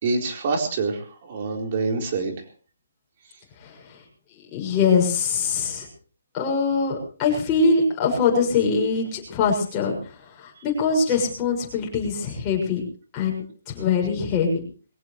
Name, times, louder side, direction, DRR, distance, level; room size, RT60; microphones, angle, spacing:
voice 1, 0.0-2.3, right 3 dB, 35° right, 2 dB, 4.4 m, -26 dB
voice 2, 3.6-4.0 4.5-5.9 6.3-12.8 13.1-14.6, left 5 dB, 15° left, -1 dB, 6.5 m, -23 dB
22.5 x 18.0 x 3.3 m, 0.40 s
hypercardioid pair, 170°, 0 cm